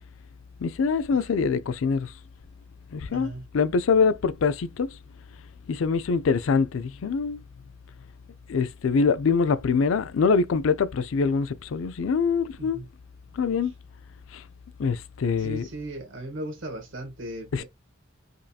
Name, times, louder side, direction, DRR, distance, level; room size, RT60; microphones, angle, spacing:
voice 1, 0.6-2.2 2.9-5.0 5.7-7.4 8.5-12.8 13.3-13.7 14.3-14.5 14.8-15.7 17.5-17.6, left 5 dB, 90° left, 0.4 m, -24 dB
voice 2, 3.1-3.4 12.6-12.8 15.4-17.6, right 1 dB, 75° right, 1.2 m, -37 dB
5.2 x 2.7 x 2.3 m
head